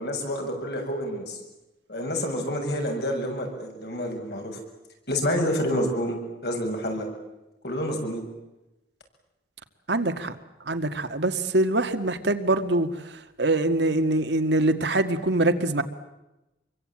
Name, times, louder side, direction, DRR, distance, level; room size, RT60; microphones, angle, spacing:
voice 1, 0.0-1.4 1.9-4.6 5.1-7.1 7.6-8.2, equal, 65° left, 3 dB, 7.2 m, -28 dB
voice 2, 9.9-10.3 10.7-12.9 13.4-15.8, right 2 dB, 75° right, 8 dB, 1.9 m, -23 dB
27.0 x 23.5 x 8.9 m, 0.98 s
head